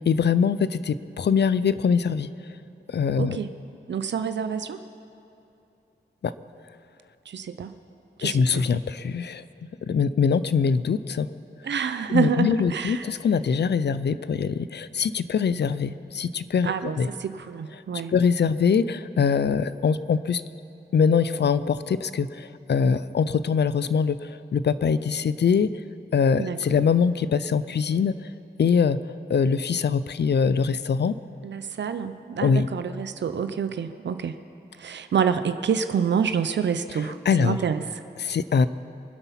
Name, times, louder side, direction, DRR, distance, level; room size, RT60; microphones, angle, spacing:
voice 1, 0.1-2.3 2.9-3.4 6.2-6.3 8.2-9.4 9.9-11.3 12.1-17.1 18.1-20.4 20.9-25.7 26.1-28.2 28.6-29.0 29.3-31.1 32.4-32.7 37.3-37.6 38.2-38.7, left 6 dB, 75° left, 15 dB, 0.5 m, -23 dB
voice 2, 3.2-3.5 3.9-4.8 7.3-7.7 8.2-8.6 11.6-13.1 16.6-18.1 26.4-26.8 31.4-34.3 34.8-37.8, right 7 dB, 90° right, 10 dB, 0.5 m, -27 dB
24.5 x 8.2 x 5.8 m, 2.8 s
wide cardioid pair, 95°, 18 cm